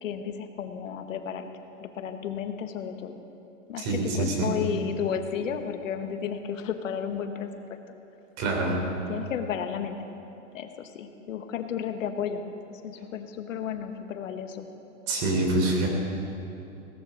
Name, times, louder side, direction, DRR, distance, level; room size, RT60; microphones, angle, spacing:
voice 1, 0.0-1.5 1.8-3.2 3.7-7.6 9.1-10.1 10.5-14.7, left 8 dB, 90° left, 7 dB, 1.3 m, -33 dB
voice 2, 3.8-4.6 8.4-8.8 15.1-15.9, right 2 dB, 40° right, 1 dB, 3.4 m, -26 dB
17.5 x 13.0 x 5.2 m, 2.9 s
supercardioid pair, 150°, 37 cm